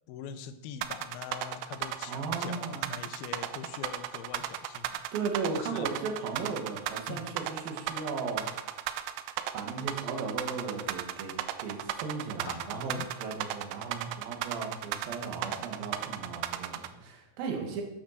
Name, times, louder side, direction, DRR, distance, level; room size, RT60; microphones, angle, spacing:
voice 1, 0.1-5.0 5.5-6.0 7.1-7.3 12.5-13.1 14.1-14.2, left 8 dB, 75° left, 8 dB, 2.4 m, -43 dB
sound 1, 0.8-16.9, right 13 dB, 85° right, 3.0 m, -35 dB
voice 2, 2.1-2.9 5.1-8.9 9.5-17.8, right 4 dB, 60° right, 2 dB, 3.4 m, -36 dB
10.0 x 8.7 x 6.6 m, 0.94 s
omnidirectional pair, 5.3 m